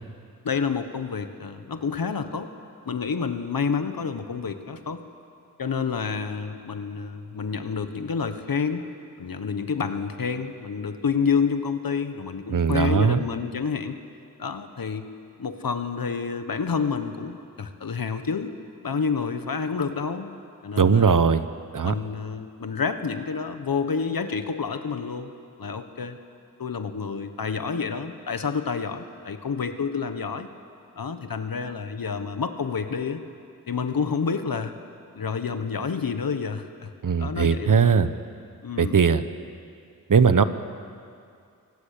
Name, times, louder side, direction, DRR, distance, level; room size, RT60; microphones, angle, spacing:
voice 1, 0.4-2.5 2.8-5.0 5.6-8.9 9.2-14.0 14.4-15.1 15.4-18.5 18.8-20.3 20.6-21.2 21.8-25.3 25.6-26.2 26.6-30.5 31.0-33.2 33.7-34.7 35.1-36.9 37.2-38.0 38.6-38.9, left 5 dB, 75° left, 9 dB, 1.5 m, -29 dB
voice 2, 12.5-13.2 20.8-21.4 21.7-21.9 37.0-38.1 38.8-39.2 40.1-40.4, right 6 dB, 65° right, 12 dB, 1.0 m, -19 dB
24.5 x 18.5 x 8.6 m, 2.4 s
wide cardioid pair, 75°, 35 cm